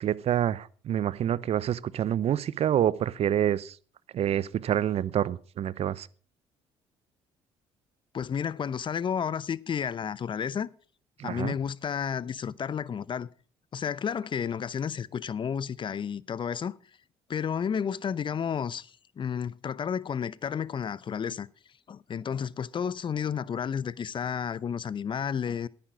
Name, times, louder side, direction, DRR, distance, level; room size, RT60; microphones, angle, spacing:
voice 1, 0.0-3.8 4.1-6.1 11.2-11.5, right 10 dB, 55° right, 0.7 m, -27 dB
voice 2, 8.1-10.7 11.2-13.3 13.7-16.8 17.3-21.5 21.9-25.7, left 7 dB, 40° left, 0.7 m, -31 dB
10.5 x 9.4 x 6.3 m
supercardioid pair, 65°, 13 cm